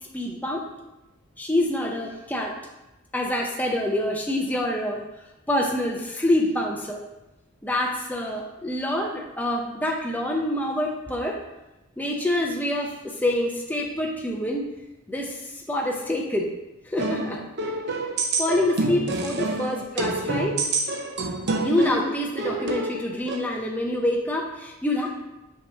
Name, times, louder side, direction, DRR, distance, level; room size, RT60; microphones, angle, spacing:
voice 1, 0.1-0.6 1.4-2.5 3.1-5.0 5.5-7.0 7.6-11.4 12.0-14.6 15.1-16.5 16.9-17.4 18.4-20.6 21.6-25.1, left 1 dB, 10° left, 0 dB, 0.5 m, -26 dB
sound 1, 17.0-23.4, right 2 dB, 55° right, 0.7 m, -27 dB
6.1 x 2.9 x 5.4 m, 0.97 s
head